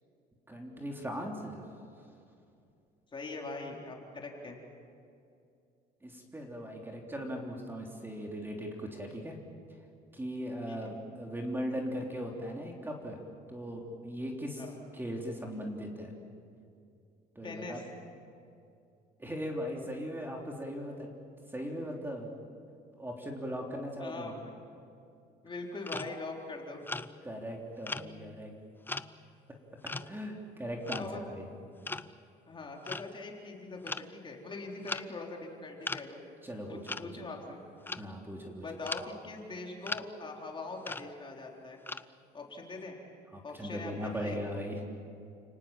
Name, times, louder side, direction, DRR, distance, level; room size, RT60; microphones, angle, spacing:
voice 1, 0.5-1.6 6.0-9.4 10.1-13.2 13.5-14.6 14.9-16.1 17.3-17.8 19.2-21.1 21.5-22.3 22.9-24.4 27.2-28.5 29.8-31.4 36.4-37.3 38.0-38.6 43.3-44.8, equal, 10° right, 1 dB, 3.4 m, -39 dB
voice 2, 3.1-4.6 10.7-10.8 14.6-14.7 17.4-17.8 24.0-24.5 25.4-26.8 30.9-31.2 32.5-36.2 36.7-37.6 38.6-41.8 42.3-43.0 43.4-44.4, left 3 dB, 30° left, 0 dB, 4.0 m, -42 dB
sound 1, 25.9-26.2 26.8-27.2 27.8-28.5 28.9-29.3 29.9-30.2 30.8-31.1 31.8-32.1 32.9-33.2 33.9-34.0 34.4-34.5 34.8-35.1 35.8-36.1 36.9-37.0 37.6-38.1 38.8-39.1 39.8-40.0 40.8-41.1 41.9-42.0, left 3 dB, 10° left, 0.6 m, -38 dB
30.0 x 19.0 x 7.6 m, 2.5 s
cardioid pair, 110°, 17 cm